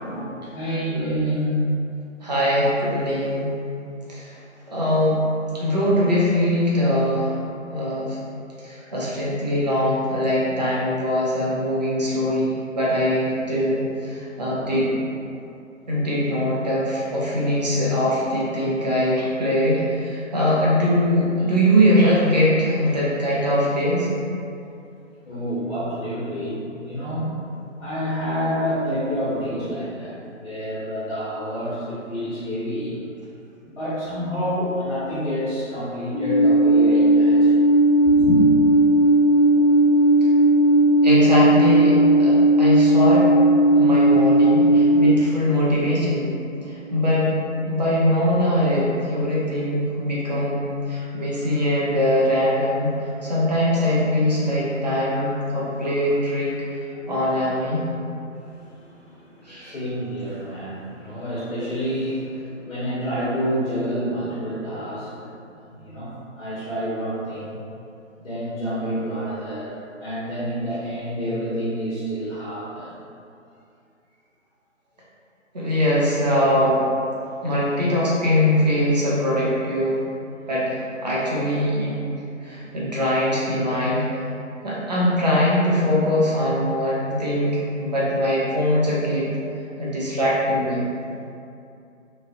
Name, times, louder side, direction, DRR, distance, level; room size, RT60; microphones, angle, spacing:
voice 1, 0.0-1.6 14.6-14.9 25.2-27.3 27.8-33.0 33.6-37.6 38.0-38.4 55.0-55.2 56.9-57.2 58.8-65.3 65.7-66.1 66.4-67.6 68.2-69.7 70.0-72.9 78.5-78.6 82.5-82.8, equal, 45° left, -11 dB, 0.9 m, -28 dB
voice 2, 2.2-3.5 4.1-4.4 4.7-5.2 5.5-7.3 7.7-8.2 8.6-14.9 15.9-24.1 41.0-43.3 43.8-46.3 46.6-47.3 47.6-52.9 53.2-56.5 57.1-57.9 59.4-59.8 75.5-76.9 77.4-80.0 80.5-82.0 82.4-84.2 84.6-89.3 89.8-90.8, equal, 35° right, -7 dB, 0.5 m, -22 dB
Alarm, 36.1-45.0, right 1 dB, 65° right, 1.0 m, -16 dB
3.0 x 2.3 x 2.7 m, 2.6 s
figure-of-eight pair, 145°, 40 cm